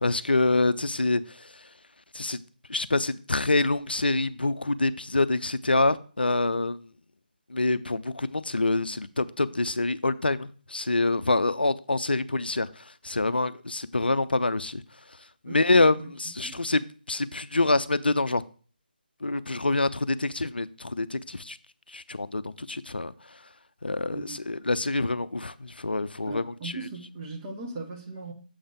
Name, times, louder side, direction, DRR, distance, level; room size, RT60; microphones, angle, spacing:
voice 1, 0.0-1.2 2.1-2.4 2.7-6.8 7.5-14.8 15.4-18.4 19.2-21.6 21.9-23.1 23.8-26.7, left 2 dB, 75° left, 0.4 m, -26 dB
voice 2, 15.4-16.1 16.4-16.6 24.1-24.4 26.3-28.3, right 3 dB, 20° right, 1.3 m, -39 dB
7.1 x 3.5 x 5.2 m
figure-of-eight pair, 150°, 5 cm